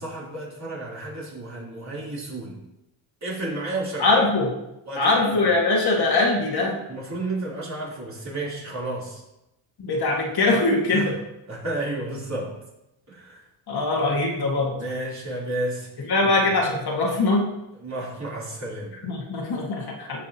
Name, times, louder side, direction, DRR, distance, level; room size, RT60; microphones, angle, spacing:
voice 1, 0.0-2.5 3.2-4.3 4.9-5.3 6.9-9.2 10.9-11.1 11.5-12.5 13.1-13.4 14.8-15.9 16.2-16.3 17.8-18.9, right 2 dB, 35° right, -5 dB, 3.5 m, -32 dB
voice 2, 4.0-4.5 5.0-6.7 9.8-11.1 13.7-14.8 16.1-17.5 19.0-20.2, left 2 dB, 50° left, -1 dB, 2.0 m, -22 dB
17.0 x 6.3 x 3.0 m, 0.88 s
cardioid pair, 125°, 49 cm